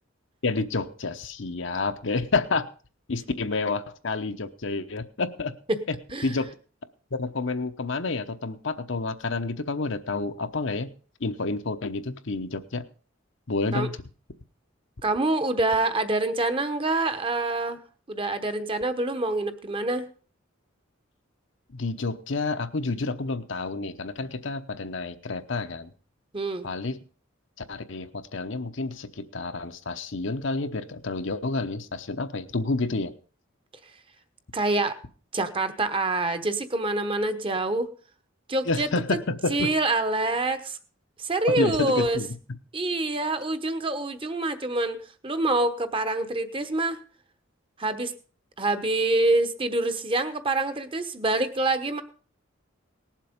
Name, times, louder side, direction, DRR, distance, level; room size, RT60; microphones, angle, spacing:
voice 1, 0.4-2.7 3.1-5.5 5.9-6.0 6.2-6.5 7.2-10.9 11.2-12.9 13.5-14.0 21.7-25.9 26.6-27.0 27.7-33.1 38.7-39.8 41.5-42.3, left 3 dB, 60° left, 9 dB, 0.9 m, -29 dB
voice 2, 15.0-17.8 18.1-20.0 26.3-26.7 34.5-35.0 35.3-37.9 38.5-39.2 39.5-40.8 41.2-42.2 42.7-45.0 45.2-47.0 47.8-48.1 48.6-52.0, right 2 dB, 25° right, 11 dB, 1.0 m, -26 dB
18.5 x 7.5 x 5.2 m, 0.40 s
head